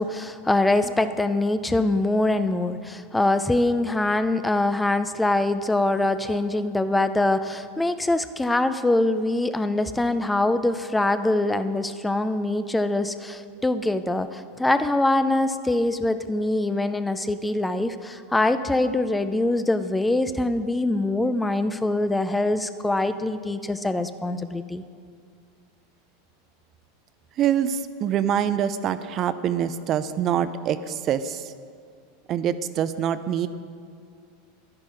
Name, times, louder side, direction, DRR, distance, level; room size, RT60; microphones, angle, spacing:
voice 1, 0.0-24.8, left 2 dB, 10° left, 11 dB, 0.5 m, -23 dB
voice 2, 27.4-31.5 32.3-33.5, right 9 dB, 40° right, 12 dB, 0.5 m, -25 dB
11.5 x 9.8 x 4.8 m, 2.2 s
hypercardioid pair, 90°, 0 cm